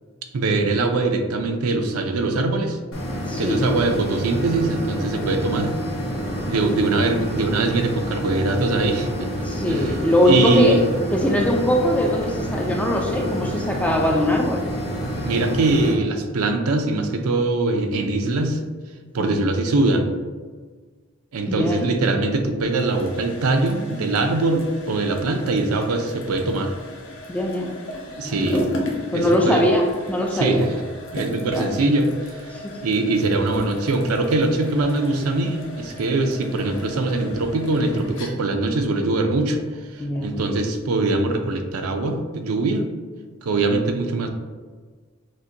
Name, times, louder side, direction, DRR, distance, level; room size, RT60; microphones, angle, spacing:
voice 1, 0.3-2.8 3.4-5.7 6.5-9.3 9.7-10.0 10.3-10.8 15.2-18.6 19.1-20.1 21.3-26.7 28.2-28.7 29.1-29.6 30.3-30.8 31.1-32.4 32.8-39.6 39.9-42.8 43.4-44.3, right 2 dB, 85° right, 5 dB, 0.5 m, -22 dB
sound 1, 2.9-15.9, equal, 75° left, 1.0 m, -28 dB
voice 2, 3.3-3.7 9.4-10.8 11.1-14.6 19.2-19.4 21.5-21.9 27.3-27.7 28.2-28.6 29.1-30.7 31.5-31.7 32.5-32.7 40.0-40.3, left 1 dB, 5° left, 0 dB, 0.3 m, -21 dB
sound 2, 22.6-40.4, left 1 dB, 60° left, 0.7 m, -36 dB
6.2 x 2.2 x 2.7 m, 1.5 s
head